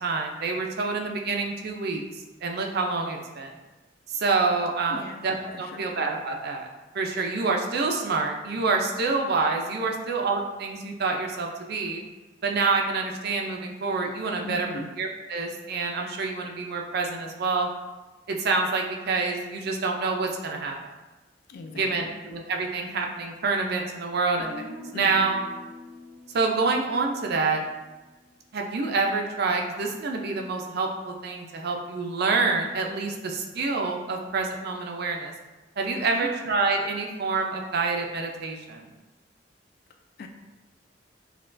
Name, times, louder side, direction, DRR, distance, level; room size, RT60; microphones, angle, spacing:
voice 1, 0.0-3.5 4.1-6.7 6.9-12.0 12.4-14.7 15.0-17.7 18.3-20.8 21.7-24.7 24.9-25.4 26.3-27.6 28.5-35.3 35.8-38.9, right 4 dB, 60° right, 2 dB, 0.5 m, -27 dB
voice 2, 4.9-5.2 5.5-5.9 14.4-14.9 21.5-22.2 24.9-25.4 36.0-36.3 40.2-40.3, left 2 dB, 55° left, 5 dB, 0.4 m, -38 dB
Guitar, 24.4-28.3, left 2 dB, 5° left, 0.8 m, -45 dB
5.6 x 2.2 x 2.5 m, 1.1 s
head